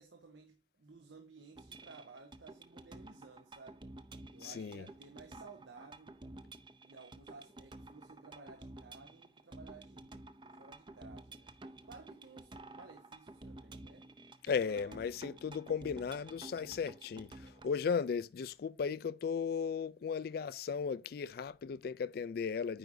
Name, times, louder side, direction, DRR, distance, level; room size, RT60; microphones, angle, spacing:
voice 1, 0.0-3.8 4.3-6.2 6.8-10.2 10.6-11.5 11.8-14.1 14.6-15.0, right 4 dB, 80° right, 1.0 m, -56 dB
sound 1, 1.6-17.7, right 2 dB, 25° right, 0.5 m, -52 dB
voice 2, 4.4-4.9 14.4-22.8, left 6 dB, 55° left, 0.3 m, -36 dB
9.1 x 4.9 x 2.6 m
head